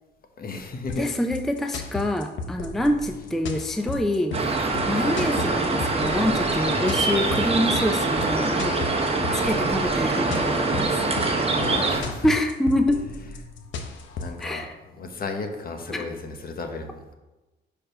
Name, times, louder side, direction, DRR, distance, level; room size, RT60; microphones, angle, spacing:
voice 1, 0.4-1.1 5.0-5.2 11.5-12.3 14.2-14.6 14.9-17.1, left 3 dB, 50° left, 5 dB, 1.1 m, -34 dB
sound 1, 0.9-14.5, left 4 dB, 70° left, 0.9 m, -35 dB
voice 2, 1.0-4.4 4.9-8.7 9.4-11.0 12.2-13.0 14.4-14.7 15.9-16.1, left 1 dB, ahead, 6 dB, 0.5 m, -26 dB
sound 2, 4.3-12.0, right 3 dB, 30° right, 1.3 m, -24 dB
5.0 x 4.5 x 5.5 m, 1.1 s
cardioid pair, 90°, 20 cm